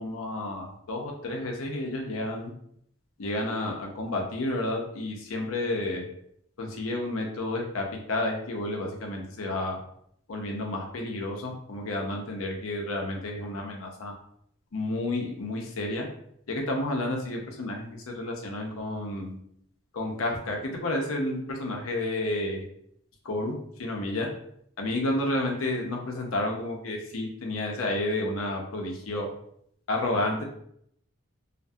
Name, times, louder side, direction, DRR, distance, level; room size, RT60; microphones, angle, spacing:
voice 1, 0.0-2.5 3.2-6.1 6.6-9.8 10.3-14.1 14.7-16.1 16.5-19.4 19.9-22.6 23.2-24.3 24.8-29.3 29.9-30.4, left 1 dB, 90° left, 1 dB, 0.6 m, -31 dB
2.5 x 2.3 x 2.6 m, 0.69 s
head